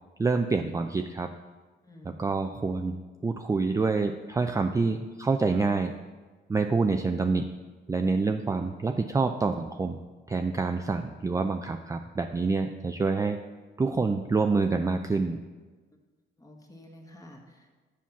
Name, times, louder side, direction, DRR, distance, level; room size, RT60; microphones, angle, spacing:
voice 1, 0.2-1.3 2.0-5.9 6.5-7.5 7.9-10.0 10.3-13.4 13.8-15.4, right 4 dB, 15° right, 6 dB, 0.4 m, -27 dB
voice 2, 1.8-2.4 16.4-17.8, left 1 dB, 15° left, 1 dB, 1.4 m, -50 dB
7.3 x 5.7 x 5.9 m, 1.3 s
cardioid pair, 90°, 20 cm